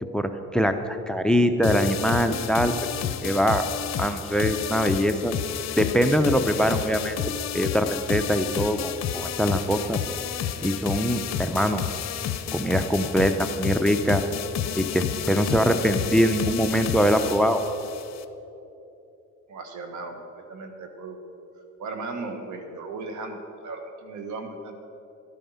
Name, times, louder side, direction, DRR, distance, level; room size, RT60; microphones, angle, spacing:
voice 1, 0.0-2.7 3.2-3.6 4.0-5.3 5.8-7.2 7.5-10.0 10.6-11.8 12.5-14.2 14.8-17.6, equal, 5° left, 9 dB, 0.6 m, -23 dB
sound 1, 1.6-18.2, left 9 dB, 60° left, 0.7 m, -31 dB
voice 2, 19.5-21.2 21.8-24.9, right 3 dB, 75° right, 5 dB, 1.5 m, -36 dB
12.0 x 9.0 x 5.7 m, 2.9 s
cardioid pair, 90°, 30 cm